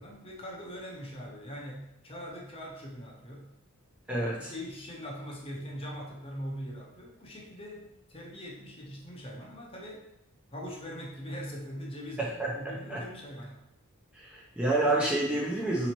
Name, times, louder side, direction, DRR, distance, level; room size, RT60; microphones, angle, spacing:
voice 1, 0.0-3.5 4.1-10.1 10.5-13.6, equal, 25° left, -2 dB, 0.8 m, -42 dB
voice 2, 4.1-4.5 12.2-12.5 12.9-13.0 14.1-15.9, right 2 dB, 5° right, -4 dB, 0.6 m, -28 dB
4.0 x 3.0 x 4.4 m, 0.81 s
head